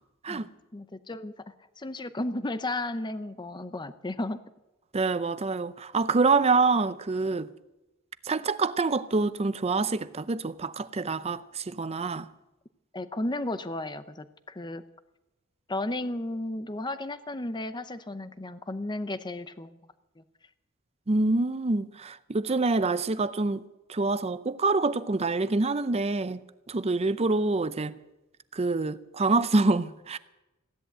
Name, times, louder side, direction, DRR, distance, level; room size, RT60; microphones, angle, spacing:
voice 1, 0.3-4.4 12.9-14.8 15.7-19.8 20.2-20.3, left 2 dB, 20° left, 0.7 m, -34 dB
voice 2, 4.9-7.5 8.3-12.3 21.1-23.6 23.9-26.4 26.7-28.0 28.5-30.2, right 3 dB, 30° right, 0.5 m, -26 dB
16.0 x 10.5 x 7.8 m
head